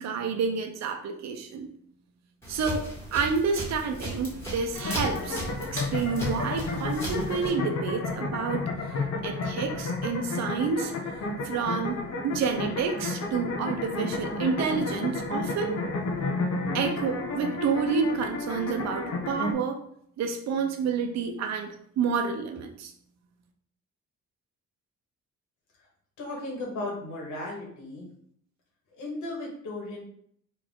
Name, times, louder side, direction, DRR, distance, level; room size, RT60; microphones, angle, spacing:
voice 1, 0.0-1.7 2.5-5.4 5.7-8.6 9.2-10.9 11.4-12.0 12.2-15.8 16.7-19.8 20.2-22.9, right 5 dB, 65° right, 3 dB, 0.6 m, -29 dB
sound 1, 2.4-7.5, equal, 10° left, 2.0 m, -36 dB
sound 2, 4.7-19.5, left 3 dB, 60° left, 1.0 m, -32 dB
voice 2, 26.2-28.1 28.9-30.0, left 2 dB, 80° left, -2 dB, 1.7 m, -35 dB
4.5 x 3.2 x 3.7 m, 0.66 s
cardioid pair, 145°, 29 cm